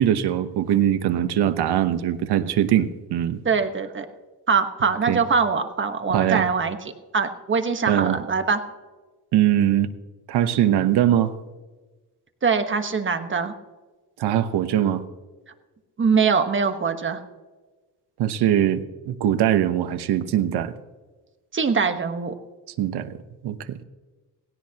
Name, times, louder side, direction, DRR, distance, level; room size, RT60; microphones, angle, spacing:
voice 1, 0.0-3.4 5.1-5.2 6.1-6.5 7.9-8.2 9.3-9.9 10.3-11.3 14.2-15.0 18.2-20.7 22.8-23.2 23.4-23.8, right 11 dB, 80° right, 11 dB, 1.1 m, -21 dB
voice 2, 3.4-4.0 4.5-6.8 7.1-8.6 12.4-13.5 16.0-17.2 21.5-22.3, right 5 dB, 30° right, 7 dB, 1.3 m, -22 dB
18.0 x 17.0 x 2.9 m, 1.3 s
cardioid pair, 120°, 39 cm